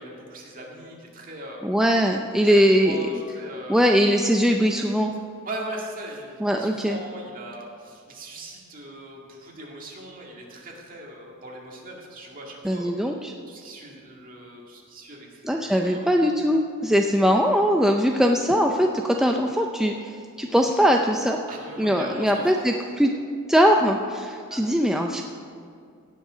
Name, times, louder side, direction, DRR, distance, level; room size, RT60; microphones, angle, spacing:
voice 1, 0.0-1.6 2.4-3.9 5.4-12.9 13.5-16.2 21.5-22.5 24.5-24.6, right 1 dB, 40° right, -1 dB, 2.1 m, -39 dB
voice 2, 1.6-3.2 3.7-5.1 6.4-7.0 12.6-13.3 15.4-21.4 21.8-23.1 23.5-25.2, equal, ahead, 2 dB, 0.4 m, -21 dB
17.0 x 6.5 x 5.0 m, 2.3 s
head